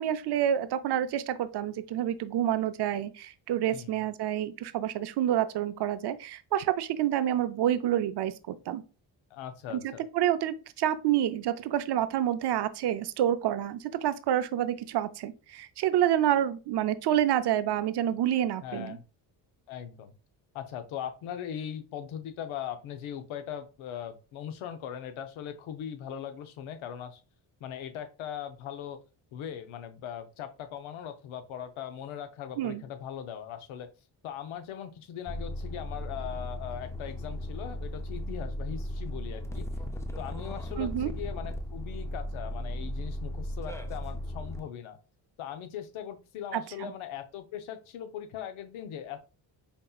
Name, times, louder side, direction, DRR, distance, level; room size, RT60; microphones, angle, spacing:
voice 1, 0.0-8.8 9.7-9.8 10.1-19.0 32.6-32.8 40.8-41.1 46.5-46.9, right 11 dB, 60° right, 0.5 m, -28 dB
voice 2, 3.7-4.0 9.3-10.0 18.6-19.0 19.7-20.1 20.5-27.2 27.6-29.0 29.3-33.9 34.2-39.7 40.2-45.0 45.4-49.2, left 9 dB, 85° left, 0.7 m, -40 dB
sound 1, 35.3-44.6, left 1 dB, 5° left, 0.5 m, -36 dB
5.2 x 2.8 x 2.3 m
cardioid pair, 75°, 47 cm